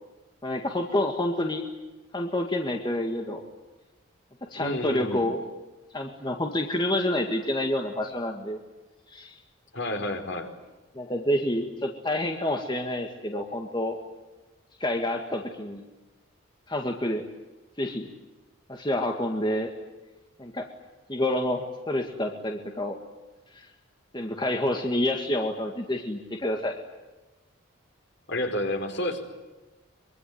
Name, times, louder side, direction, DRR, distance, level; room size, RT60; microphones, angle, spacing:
voice 1, 0.4-1.7 2.1-3.4 4.5-5.5 5.9-8.6 9.1-9.3 11.0-14.0 14.8-15.8 16.7-17.2 17.8-18.1 18.7-19.7 20.4-20.7 21.1-23.0 23.6-23.7 24.1-26.7, left 1 dB, 20° left, 3 dB, 1.9 m, -28 dB
voice 2, 4.6-5.2 9.7-10.5 28.3-29.2, left 1 dB, 55° left, 5 dB, 4.5 m, -30 dB
24.5 x 23.5 x 9.5 m, 1.1 s
head